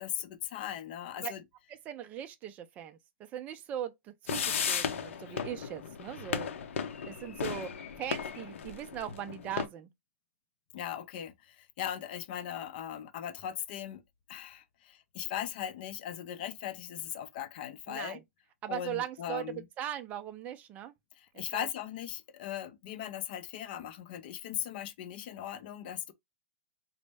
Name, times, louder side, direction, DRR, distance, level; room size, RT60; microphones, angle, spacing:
voice 1, 0.0-1.4 5.3-5.4 10.7-14.0 14.3-18.2 18.7-19.7 21.2-26.1, left 10 dB, 45° left, 0.5 m, -39 dB
voice 2, 1.7-6.5 7.1-7.7 8.0-9.9 17.9-18.2 18.6-20.9 21.3-21.7, right 10 dB, 20° right, 0.4 m, -39 dB
sound 1, 4.3-9.7, left 7 dB, 80° left, 0.7 m, -35 dB
4.0 x 2.1 x 3.3 m
hypercardioid pair, 160°, 7 cm